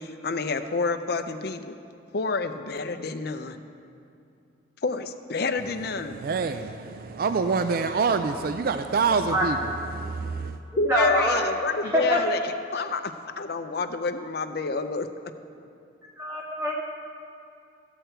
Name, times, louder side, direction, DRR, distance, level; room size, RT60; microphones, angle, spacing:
voice 1, 0.0-1.7 2.1-3.6 4.8-6.2 10.8-12.4 12.7-15.1, left 3 dB, 55° left, 9 dB, 0.5 m, -28 dB
voice 2, 5.6-10.6, right 4 dB, 50° right, 9 dB, 0.3 m, -27 dB
voice 3, 10.9-11.5 11.9-12.4 16.2-16.8, equal, 15° right, -3 dB, 0.8 m, -24 dB
14.5 x 7.9 x 4.5 m, 2.5 s
head